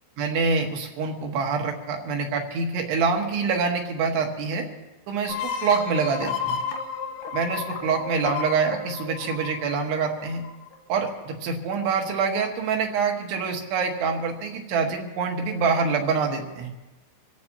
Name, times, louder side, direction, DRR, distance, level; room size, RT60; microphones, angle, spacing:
voice 1, 0.2-4.7 5.1-6.6 7.3-10.4 10.9-16.7, right 5 dB, 75° right, 2 dB, 3.5 m, -25 dB
sound 1, 5.3-10.7, left 6 dB, 70° left, 2.1 m, -32 dB
26.5 x 14.5 x 2.9 m, 1.1 s
omnidirectional pair, 5.1 m